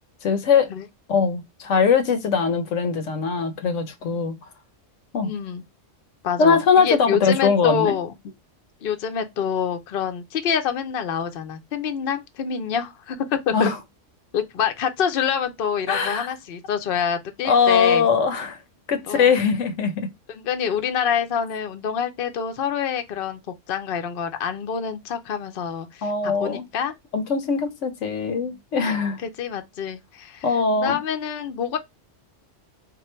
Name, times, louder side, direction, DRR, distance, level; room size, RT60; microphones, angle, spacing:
voice 1, 0.2-0.7 1.1-4.4 5.1-5.3 6.4-8.0 13.5-13.8 15.9-16.3 17.4-18.6 18.9-20.1 26.0-26.6 27.1-29.2 30.4-31.0, left 5 dB, 75° left, 1.1 m, -21 dB
voice 2, 5.2-5.6 6.2-8.2 8.8-13.7 14.3-18.1 19.1-19.4 20.3-26.9 29.2-30.5 30.8-31.8, left 7 dB, 55° left, 0.8 m, -26 dB
3.7 x 2.5 x 4.3 m
omnidirectional pair, 1.3 m